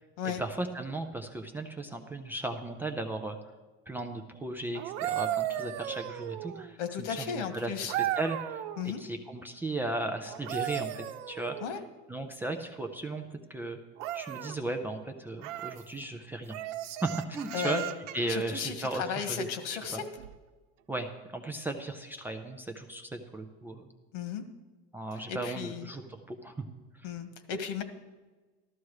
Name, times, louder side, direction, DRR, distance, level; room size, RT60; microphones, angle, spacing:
voice 1, 0.2-3.4 3.9-7.7 8.0-11.6 12.1-13.8 14.1-16.6 17.0-17.8 18.1-20.0 20.9-23.9 24.9-26.5 27.0-27.1, right 2 dB, 5° right, 3 dB, 0.4 m, -36 dB
sound 1, 4.7-6.7 7.9-8.9 10.3-11.9 14.0-14.6 15.4-15.8 16.5-18.3 20.2-20.4, right 13 dB, 90° right, 0.9 m, -35 dB
voice 2, 6.8-7.9 8.8-9.0 11.6-11.8 17.5-17.8 18.3-20.0 24.1-24.4 25.3-25.9 27.0-27.8, left 7 dB, 85° left, 8 dB, 1.7 m, -35 dB
14.0 x 13.0 x 4.8 m, 1.3 s
cardioid pair, 170°, 36 cm